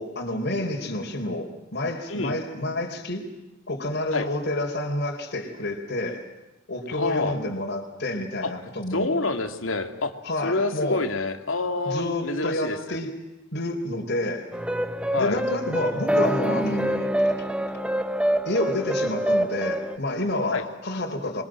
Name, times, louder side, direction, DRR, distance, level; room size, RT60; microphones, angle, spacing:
voice 1, 0.0-3.3 3.7-6.3 6.7-9.2 10.2-11.0 11.9-13.2 13.5-14.5 15.2-17.5 18.4-21.4, left 1 dB, 55° left, 0 dB, 4.5 m, -29 dB
voice 2, 6.9-7.4 8.4-8.5 8.9-10.1 10.4-13.0 15.1-15.4 20.5-20.6, left 3 dB, 90° left, 6 dB, 2.8 m, -27 dB
sound 1, 14.5-20.0, right 1 dB, 5° right, 1.2 m, -25 dB
28.0 x 23.5 x 7.8 m, 1.0 s
head